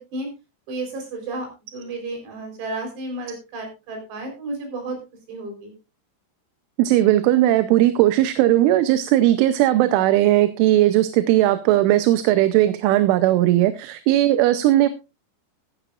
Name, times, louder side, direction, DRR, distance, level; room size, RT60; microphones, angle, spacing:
voice 1, 0.7-5.0 5.3-5.7, right 2 dB, 60° right, 3 dB, 6.1 m, -32 dB
voice 2, 6.8-14.9, right 14 dB, 85° right, 11 dB, 3.2 m, -18 dB
14.0 x 14.0 x 2.5 m, 0.27 s
omnidirectional pair, 5.5 m